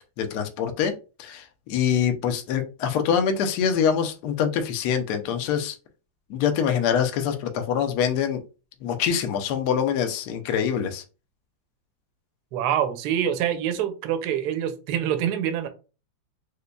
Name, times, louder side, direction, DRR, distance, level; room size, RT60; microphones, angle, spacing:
voice 1, 0.2-0.9 1.2-5.7 6.3-8.4 8.8-11.0, left 8 dB, 70° left, 1.0 m, -24 dB
voice 2, 12.5-15.7, right 10 dB, 70° right, 1.0 m, -25 dB
5.0 x 2.2 x 2.2 m
omnidirectional pair, 2.1 m